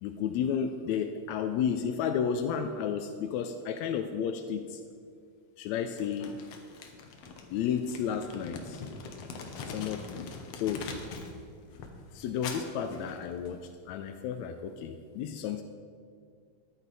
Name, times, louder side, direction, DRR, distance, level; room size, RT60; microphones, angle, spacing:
voice 1, 0.0-4.8 5.6-6.4 7.5-8.8 9.7-10.9 12.1-15.6, left 7 dB, 85° left, 7 dB, 1.6 m, -32 dB
Crumpling crinkling, 6.0-11.4 11.7-13.7, left 4 dB, 65° left, 1.8 m, -43 dB
13.5 x 10.0 x 4.0 m, 2.2 s
omnidirectional pair, 3.7 m